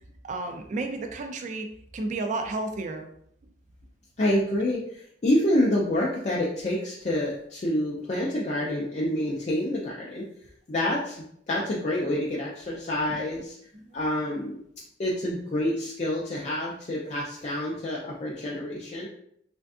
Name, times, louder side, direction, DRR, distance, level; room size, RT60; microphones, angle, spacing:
voice 1, 0.2-1.7 1.9-3.1 13.7-14.0, right 3 dB, 40° right, 5 dB, 0.3 m, -32 dB
voice 2, 4.2-10.2 10.7-11.2 11.5-13.6 13.9-14.6 15.0-19.1, left 1 dB, 35° left, -5 dB, 0.4 m, -27 dB
3.3 x 2.5 x 2.3 m, 0.69 s
head